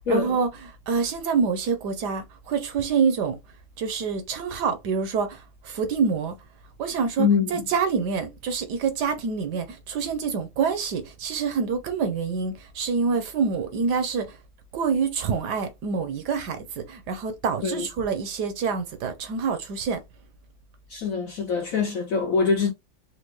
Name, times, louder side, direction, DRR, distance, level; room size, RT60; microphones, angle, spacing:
voice 1, 0.1-3.4 3.8-6.4 6.8-14.4 14.7-20.0, right 5 dB, 70° right, 1.2 m, -26 dB
voice 2, 7.2-7.6 17.6-17.9 20.9-22.7, left 5 dB, 70° left, 0.8 m, -24 dB
4.4 x 2.3 x 3.0 m
omnidirectional pair, 2.1 m